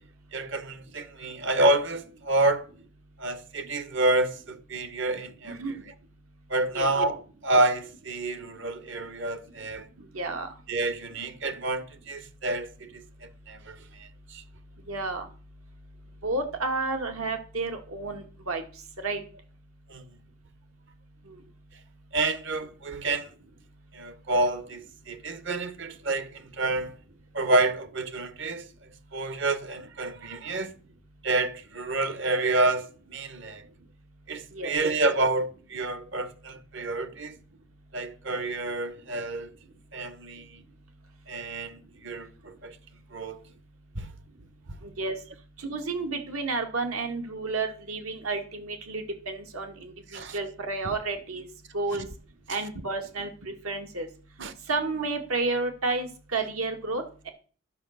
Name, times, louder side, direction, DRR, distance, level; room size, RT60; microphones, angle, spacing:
voice 1, 0.3-2.7 3.2-5.6 6.5-9.9 10.7-13.0 13.5-14.1 14.3-14.4 17.0-17.1 19.9-20.0 22.1-23.3 23.9-26.9 27.3-28.7 29.1-30.7 31.2-33.6 34.3-37.4 37.9-39.5 39.9-40.6 41.3-42.8 43.1-43.4 44.0-44.1 50.1-50.3 51.9-52.1 54.4-54.5, right 2 dB, 55° right, 0.9 m, -28 dB
voice 2, 10.1-10.5 14.9-15.3 16.2-18.6 19.0-19.2 21.3-21.4 34.5-34.8 44.8-45.2 45.6-51.5 51.7-52.0 52.5-54.1 54.7-57.3, right 3 dB, 85° right, 2.0 m, -31 dB
11.5 x 5.5 x 6.5 m
head